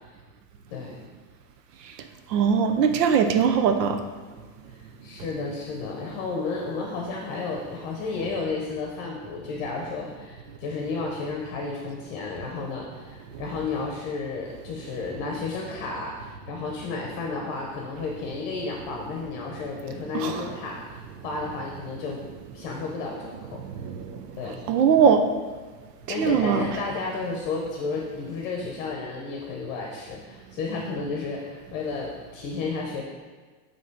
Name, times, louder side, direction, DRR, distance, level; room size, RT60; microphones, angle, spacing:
voice 1, 0.7-1.0 2.9-3.0 5.0-22.2 22.5-23.6 24.4-24.6 26.1-33.0, left 4 dB, 35° left, -1 dB, 0.8 m, -32 dB
voice 2, 2.3-3.9 20.2-20.3 23.8-24.0 24.7-25.2 26.2-26.6, right 7 dB, 85° right, 7 dB, 0.8 m, -20 dB
8.2 x 3.0 x 4.6 m, 1.4 s
supercardioid pair, 160°, 47 cm